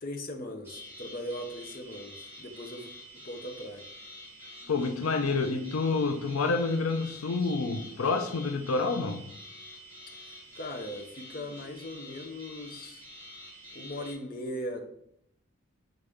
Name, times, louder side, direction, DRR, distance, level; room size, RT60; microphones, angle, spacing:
voice 1, 0.0-2.9 3.2-3.8 10.5-13.0 13.7-14.8, left 1 dB, 40° left, 3 dB, 0.7 m, -39 dB
sound 1, 0.6-14.1, left 1 dB, 10° right, 1.9 m, -47 dB
voice 2, 4.7-9.2, left 4 dB, 85° left, 7 dB, 0.5 m, -28 dB
6.9 x 3.9 x 3.6 m, 0.73 s
head